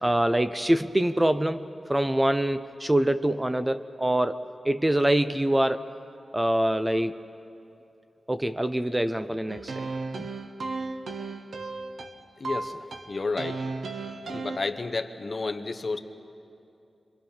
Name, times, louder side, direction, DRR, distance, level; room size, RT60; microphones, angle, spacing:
voice 1, 0.0-5.9 6.3-7.2 8.3-9.9, right 1 dB, 15° right, 10 dB, 0.5 m, -25 dB
sound 1, 9.5-14.6, right 3 dB, 85° right, 1.2 m, -35 dB
voice 2, 12.4-13.7 14.3-16.0, left 3 dB, 40° left, 7 dB, 1.0 m, -31 dB
27.0 x 23.5 x 5.8 m, 2.7 s
wide cardioid pair, 120°, 0 cm